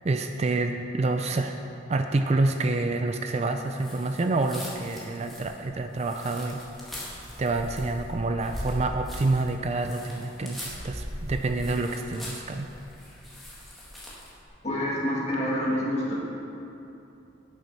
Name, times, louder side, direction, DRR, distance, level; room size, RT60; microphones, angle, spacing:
voice 1, 0.0-1.6 1.9-6.6 6.9-7.1 7.4-12.7, right 2 dB, 35° right, 6 dB, 0.4 m, -27 dB
sound 1, 3.7-14.4, equal, ahead, 1.8 m, -40 dB
voice 2, 14.6-16.1, equal, 35° left, -5 dB, 2.1 m, -27 dB
9.0 x 7.8 x 5.6 m, 2.8 s
head